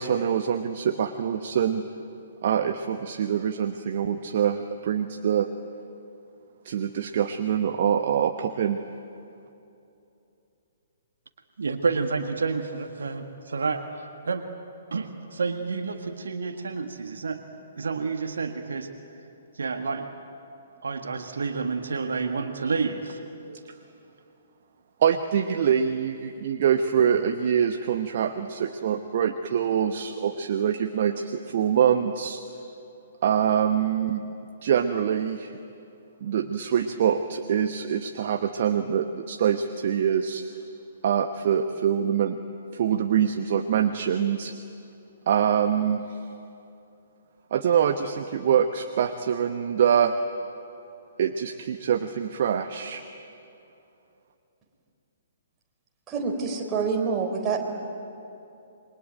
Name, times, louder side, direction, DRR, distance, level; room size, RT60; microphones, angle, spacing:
voice 1, 0.0-1.8 2.4-5.5 6.6-8.8 25.0-32.4 33.2-34.2 34.6-35.6 36.2-40.4 41.0-42.4 42.7-44.5 45.3-46.2 47.5-50.1 51.2-53.0, right 8 dB, 50° right, 8 dB, 1.0 m, -24 dB
voice 2, 11.6-14.4 14.9-17.4 17.8-18.9 19.5-20.1 20.8-23.6, right 4 dB, 65° right, 6 dB, 1.7 m, -29 dB
voice 3, 56.1-57.6, right 5 dB, 20° right, 1 dB, 4.0 m, -26 dB
27.5 x 23.0 x 9.1 m, 2.8 s
figure-of-eight pair, 125°, 0 cm